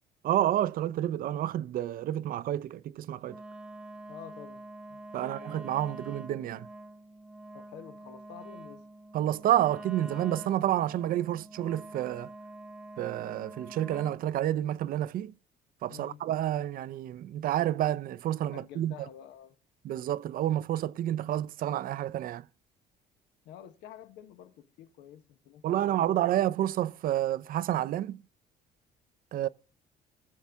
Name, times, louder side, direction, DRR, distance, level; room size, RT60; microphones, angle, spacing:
voice 1, 0.2-3.4 5.1-6.7 9.1-12.3 13.0-15.3 15.8-18.9 19.8-22.4 25.6-28.2 29.3-29.5, right 12 dB, 55° right, 0.5 m, -29 dB
Wind instrument woodwind instrument, 3.2-14.3, right 1 dB, 5° right, 0.9 m, -46 dB
voice 2, 4.1-4.6 4.9-5.5 7.5-8.8 15.9-16.2 18.5-19.5 23.4-26.3 29.4-29.5, left 10 dB, 85° left, 1.1 m, -49 dB
20.0 x 7.1 x 3.5 m
cardioid pair, 110°, 17 cm